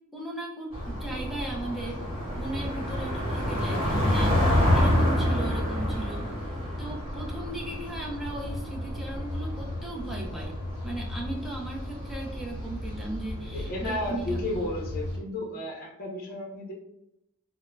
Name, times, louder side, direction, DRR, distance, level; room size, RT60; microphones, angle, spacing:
voice 1, 0.1-2.0 2.3-6.3 6.8-10.6 10.8-14.4, right 2 dB, ahead, -3 dB, 0.5 m, -37 dB
sound 1, 0.7-15.2, left 1 dB, 25° right, 1.4 m, -29 dB
voice 2, 13.5-16.7, left 1 dB, 45° left, 0 dB, 0.6 m, -33 dB
3.5 x 2.0 x 2.2 m, 0.84 s
head